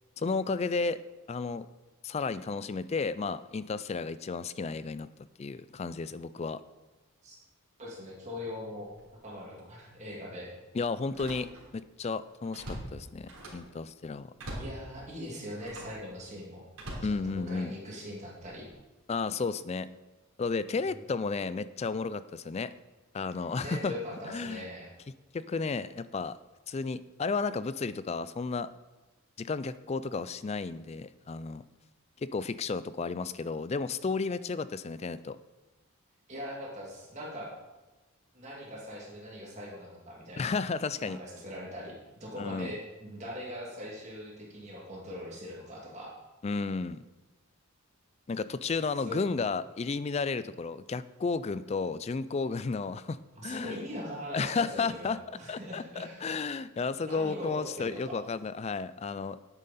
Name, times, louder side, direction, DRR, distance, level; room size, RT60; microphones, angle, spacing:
voice 1, 0.2-1.0 1.3-1.7 2.0-5.1 5.4-6.6 10.7-11.5 11.7-14.3 17.0-17.7 19.1-19.9 20.4-22.7 23.1-23.9 24.2-24.6 25.3-26.4 26.7-28.7 29.4-31.6 32.2-35.4 40.4-41.2 42.4-42.7 46.4-47.0 48.3-53.2 53.4-53.8 54.3-55.2 55.5-59.4, left 4 dB, 30° left, 15 dB, 0.3 m, -33 dB
voice 2, 7.8-8.9 9.2-10.5 14.6-16.7 17.1-18.7 23.6-24.9 36.3-37.5 38.3-40.6 41.0-46.1 49.0-49.2 53.4-56.5 57.0-58.2, left 1 dB, 30° right, -3 dB, 2.3 m, -41 dB
Slam, 8.9-9.1 9.6-9.7 11.0-11.8 12.2-13.7 14.4-14.8 15.6-16.0 16.7-17.8 18.4-18.7, right 1 dB, 75° right, 3.3 m, -43 dB
10.5 x 8.9 x 4.2 m, 1.1 s
head